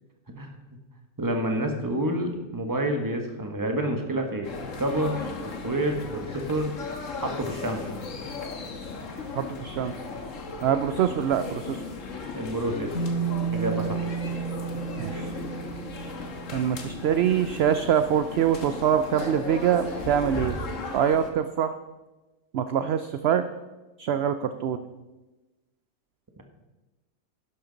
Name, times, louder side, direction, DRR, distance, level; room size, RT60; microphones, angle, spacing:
voice 1, 1.2-5.2 5.6-6.7 7.2-7.8 12.3-12.9 13.5-14.2, right 1 dB, 15° right, 3 dB, 1.1 m, -28 dB
sound 1, 4.4-21.3, left 4 dB, 65° left, 1.5 m, -37 dB
voice 2, 9.4-9.9 10.6-11.8 15.0-15.3 16.5-20.6 20.9-21.7 22.5-23.4 24.0-24.8, right 9 dB, 65° right, 10 dB, 0.6 m, -24 dB
sound 2, 12.9-17.6 17.9-18.1 18.4-20.6, right 5 dB, 85° left, 5.3 m, -33 dB
11.5 x 11.0 x 3.9 m, 1.1 s
omnidirectional pair, 1.5 m